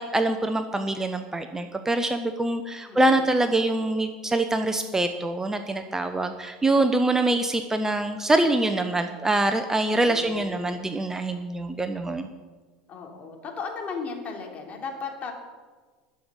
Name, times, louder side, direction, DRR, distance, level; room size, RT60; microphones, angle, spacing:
voice 1, 0.0-12.3, right 2 dB, 10° right, 7 dB, 0.9 m, -24 dB
voice 2, 2.9-3.2 9.9-11.0 12.9-15.3, left 5 dB, 35° left, 1 dB, 3.2 m, -36 dB
12.0 x 7.0 x 9.0 m, 1.4 s
hypercardioid pair, 80°, 4 cm